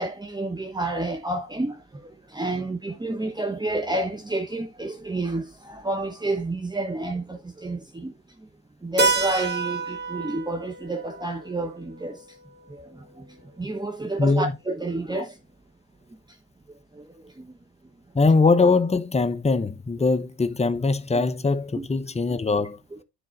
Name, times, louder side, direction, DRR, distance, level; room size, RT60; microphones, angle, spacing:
voice 1, 0.0-8.1 8.4-8.5 8.8-12.2 12.7-13.3 13.6-15.4 16.9-17.5 21.2-21.3 21.7-21.9 22.9-23.0, right 2 dB, 15° right, 1.1 m, -30 dB
Keyboard (musical), 9.0-13.4, right 4 dB, 35° right, 1.6 m, -30 dB
voice 2, 14.2-14.5 15.2-15.3 18.1-22.8, left 3 dB, 20° left, 1.0 m, -22 dB
10.0 x 3.9 x 5.3 m
cardioid pair, 90°, 30 cm